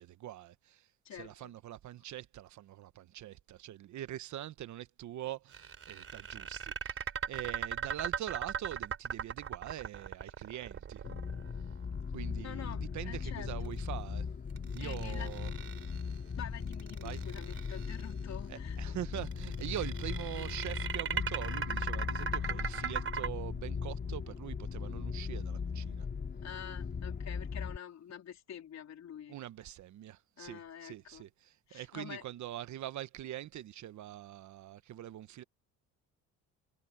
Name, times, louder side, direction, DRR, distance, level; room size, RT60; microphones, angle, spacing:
voice 1, 0.0-0.9 1.2-11.0 12.1-14.3 14.7-15.5 17.0-17.3 18.5-26.1 29.3-35.4, right 13 dB, 60° right, 1.1 m, -43 dB
voice 2, 1.0-1.5 12.4-13.7 14.8-15.3 16.4-19.0 26.4-29.4 30.4-31.2 31.7-32.2, left 9 dB, 55° left, 3.7 m, -47 dB
sound 1, 5.5-11.7 14.6-16.1 16.7-18.0 19.3-23.3, right 6 dB, 45° right, 3.8 m, -38 dB
sound 2, 11.0-27.8, left 5 dB, 30° left, 2.2 m, -38 dB
cardioid pair, 95°, 32 cm